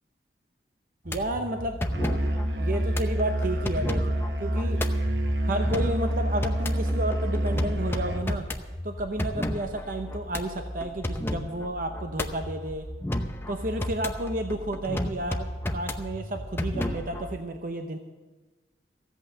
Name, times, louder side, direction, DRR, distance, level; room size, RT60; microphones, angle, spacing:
voice 1, 1.0-1.8 2.6-4.1 4.4-4.8 5.5-8.5 8.8-12.9 13.5-18.0, right 1 dB, 50° right, 5 dB, 0.8 m, -31 dB
sound 1, 1.1-17.4, left 1 dB, 15° left, 0.7 m, -33 dB
Musical instrument, 1.9-8.3, equal, 75° right, 1.2 m, -27 dB
15.5 x 8.3 x 7.4 m, 1.2 s
head